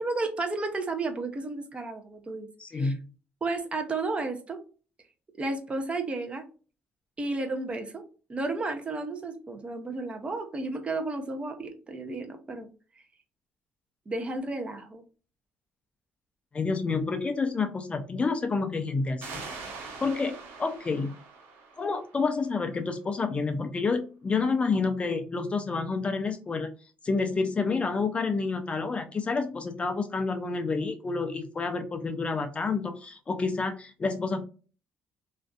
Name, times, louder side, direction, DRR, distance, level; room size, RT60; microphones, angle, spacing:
voice 1, 0.0-2.5 2.7-2.9 3.4-4.6 5.4-6.5 7.2-8.0 8.3-12.7 14.1-15.0, right 3 dB, 25° right, 5 dB, 0.5 m, -32 dB
voice 2, 2.6-3.1 16.5-19.4 20.0-21.1 21.8-26.7 27.0-34.4, left 4 dB, 25° left, 7 dB, 0.3 m, -29 dB
sound 1, 19.2-22.6, right 4 dB, 70° right, 0.9 m, -43 dB
2.5 x 2.2 x 2.3 m, 0.37 s
cardioid pair, 95°, 4 cm